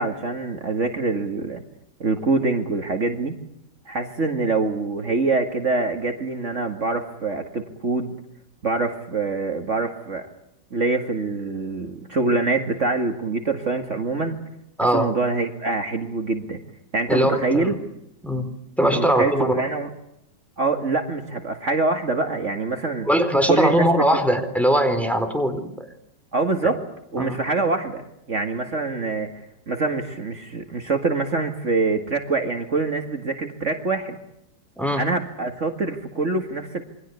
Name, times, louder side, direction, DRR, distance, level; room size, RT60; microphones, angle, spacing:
voice 1, 0.0-1.6 2.0-3.3 3.9-8.1 8.6-10.3 10.7-14.4 14.9-16.6 16.9-17.7 18.8-19.9 20.6-23.1 23.5-23.9 26.3-26.8 27.1-28.0 28.3-34.2 34.9-36.8, right 3 dB, 45° right, 5 dB, 2.3 m, -25 dB
voice 2, 14.8-15.1 17.1-17.8 18.2-18.5 18.8-19.6 23.0-25.9 27.2-27.4 34.8-35.0, equal, ahead, 6 dB, 4.1 m, -21 dB
28.5 x 24.0 x 8.3 m, 0.80 s
omnidirectional pair, 1.8 m